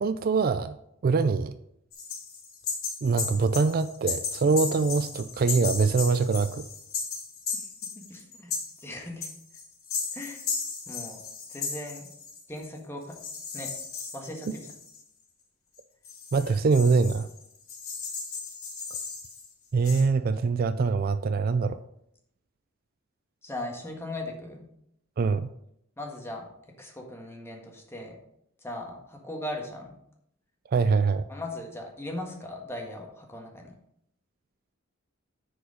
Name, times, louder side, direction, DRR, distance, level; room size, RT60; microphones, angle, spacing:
voice 1, 0.0-0.8 1.0-1.5 3.0-6.6 16.3-17.3 19.7-21.8 25.2-25.5 30.7-31.2, right 4 dB, 45° right, 12 dB, 0.3 m, -24 dB
sound 1, 1.9-12.7 13.1-15.0 15.8-15.9 16.0-19.5 19.8-20.0, left 5 dB, 85° left, 3.7 m, -35 dB
voice 2, 7.9-9.3 10.1-10.4 10.9-11.2 11.5-12.1 12.5-13.1 13.5-13.7 14.1-14.7 23.4-24.7 26.0-26.5 26.8-28.2 28.6-29.9 31.3-33.7, left 1 dB, 10° left, 1 dB, 1.6 m, -38 dB
10.0 x 5.0 x 4.9 m, 0.75 s
head